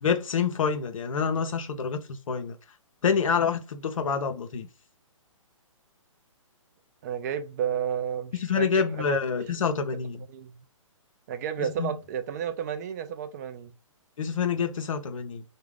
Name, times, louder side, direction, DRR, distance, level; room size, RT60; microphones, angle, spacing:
voice 1, 0.0-2.0 2.3-2.6 3.0-4.7 8.3-10.2 11.6-11.9 14.2-15.4, left 6 dB, 70° left, 0.6 m, -27 dB
voice 2, 7.0-9.2 10.3-10.5 11.3-13.7, right 8 dB, 30° right, 0.4 m, -32 dB
2.4 x 2.1 x 3.2 m
hypercardioid pair, 140°, 17 cm